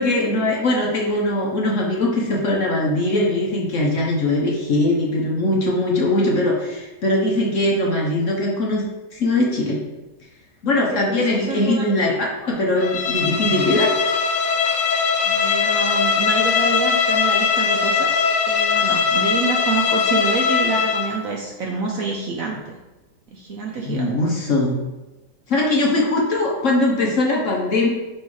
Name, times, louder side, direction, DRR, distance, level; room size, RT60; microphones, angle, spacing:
voice 1, 0.0-8.8 9.1-9.8 10.6-13.9 23.8-24.8 25.5-27.9, left 2 dB, 55° left, -2 dB, 1.0 m, -21 dB
voice 2, 10.7-11.9 15.2-18.2 18.5-22.8 23.3-24.1, right 4 dB, 65° right, 0 dB, 0.9 m, -27 dB
Bowed string instrument, 12.8-21.2, left 6 dB, 75° left, 0.6 m, -20 dB
6.1 x 3.2 x 4.8 m, 1.1 s
omnidirectional pair, 1.9 m